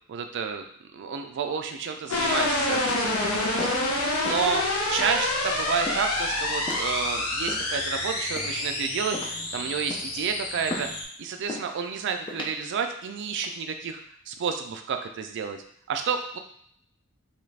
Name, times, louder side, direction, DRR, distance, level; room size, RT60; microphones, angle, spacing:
voice 1, 0.1-0.6 0.9-3.8 4.2-4.6 4.9-10.9 11.2-14.0 14.3-16.4, right 6 dB, 55° right, 6 dB, 0.4 m, -30 dB
sound 1, 2.1-11.0, left 2 dB, 75° left, 0.7 m, -28 dB
sound 2, 2.1-2.5 2.9-3.1 3.6-3.9 4.2-4.5 5.0-5.2 5.9-6.2 6.7-6.9 7.5-7.9 8.4-8.7 9.1-9.5 9.9-10.2 10.7-11.0 11.5-11.7 12.3-12.6 13.2-13.5, left 1 dB, 20° left, 0.4 m, -37 dB
3.0 x 2.4 x 3.2 m, 0.67 s
head